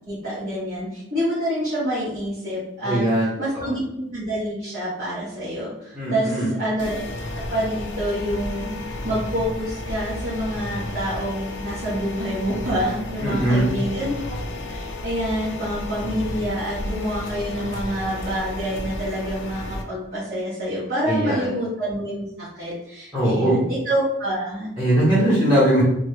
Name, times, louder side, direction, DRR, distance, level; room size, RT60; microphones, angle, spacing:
voice 1, 0.1-7.0 7.5-8.7 9.0-14.1 14.7-24.7, equal, 45° right, -11 dB, 1.2 m, -27 dB
voice 2, 2.8-3.3 3.5-3.7 5.9-6.5 13.2-13.7 21.1-21.5 23.1-23.6 24.8-25.8, right 1 dB, 10° right, -9 dB, 0.9 m, -20 dB
sound 1, 6.8-19.8, left 1 dB, 60° left, 0.5 m, -32 dB
3.5 x 2.2 x 3.2 m, 0.79 s
head